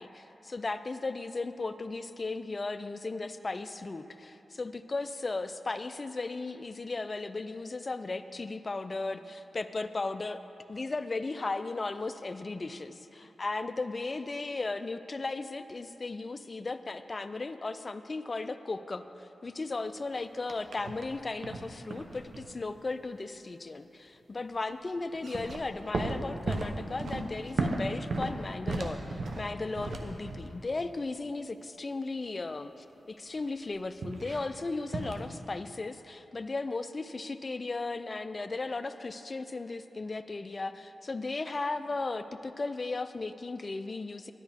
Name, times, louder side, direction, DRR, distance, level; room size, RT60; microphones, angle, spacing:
voice 1, 0.0-10.4 10.7-44.3, left 3 dB, 45° left, 11 dB, 0.4 m, -36 dB
sound 1, 20.5-21.1 21.4-22.6 25.1-30.6 34.0-34.4 34.9-35.3, right 3 dB, 70° right, 0.7 m, -35 dB
10.0 x 10.0 x 3.5 m, 2.9 s
cardioid pair, 50°, 0 cm